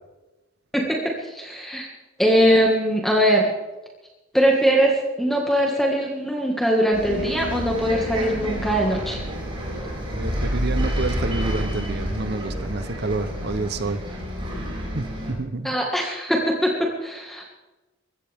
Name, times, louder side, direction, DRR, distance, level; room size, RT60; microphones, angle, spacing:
voice 1, 1.2-1.9 2.2-3.5 4.3-9.2 15.6-17.4, equal, ahead, -1 dB, 1.8 m, -21 dB
Bus, 6.9-15.3, equal, 25° right, 5.0 m, -29 dB
voice 2, 10.2-14.0 14.9-15.8, right 3 dB, 55° right, 11 dB, 0.9 m, -28 dB
22.0 x 16.0 x 3.6 m, 1.1 s
head